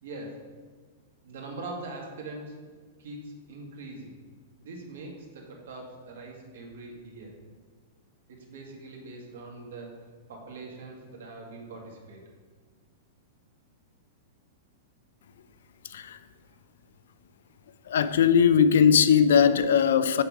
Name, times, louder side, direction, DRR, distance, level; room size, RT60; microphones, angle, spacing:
voice 1, 0.0-0.4 1.2-2.6 3.0-4.2 4.6-7.3 8.3-9.9 10.3-12.4, right 2 dB, 75° right, 1.9 m, -42 dB
voice 2, 17.9-20.2, left 7 dB, 75° left, 0.5 m, -20 dB
7.4 x 6.5 x 3.6 m
supercardioid pair, 175°, 0 cm